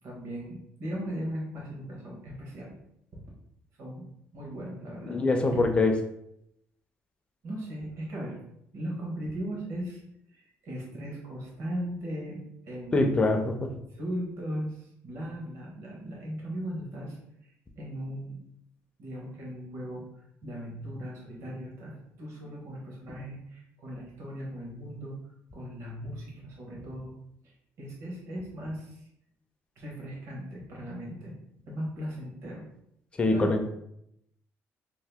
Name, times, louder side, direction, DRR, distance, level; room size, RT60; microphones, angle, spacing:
voice 1, 0.0-2.7 3.8-4.1 4.3-5.2 5.5-5.6 7.4-8.4 8.7-10.0 10.3-13.1 13.6-17.2 17.4-18.4 19.0-20.0 20.4-27.1 27.4-29.1 29.8-31.3 31.7-32.6 33.3-33.7, equal, 55° right, -3 dB, 1.1 m, -38 dB
voice 2, 5.1-6.0 12.9-13.7 33.2-33.7, left 2 dB, 20° left, 5 dB, 0.3 m, -24 dB
2.7 x 2.5 x 3.4 m, 0.76 s
cardioid pair, 160°, 6 cm